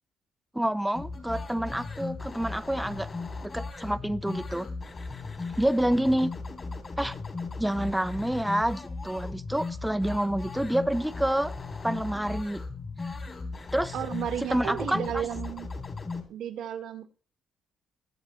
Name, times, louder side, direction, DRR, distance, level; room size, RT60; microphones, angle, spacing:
voice 1, 0.5-3.1 3.4-4.7 5.6-6.3 7.0-7.2 7.6-11.5 11.8-12.6 13.0-13.2 13.7-13.9 14.5-15.0, right 1 dB, 5° right, 10 dB, 0.7 m, -28 dB
sound 1, 0.9-16.2, left 3 dB, 35° left, 2.9 m, -37 dB
voice 2, 13.9-15.7 16.3-17.1, right 9 dB, 75° right, 8 dB, 1.4 m, -33 dB
21.0 x 8.1 x 3.1 m, 0.40 s
cardioid pair, 90°, 0 cm